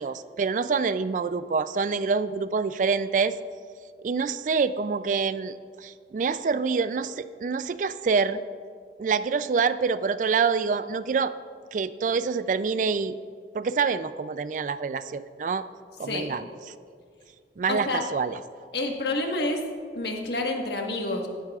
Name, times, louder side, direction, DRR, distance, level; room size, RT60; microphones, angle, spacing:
voice 1, 0.0-3.4 4.0-8.4 9.0-11.3 11.7-13.2 13.5-15.6 16.0-16.8 17.6-18.4, right 5 dB, 45° right, 14 dB, 0.3 m, -26 dB
voice 2, 17.7-18.0 18.7-19.6 19.9-21.3, left 2 dB, 65° left, 2 dB, 1.4 m, -28 dB
15.5 x 12.0 x 2.4 m, 2.1 s
head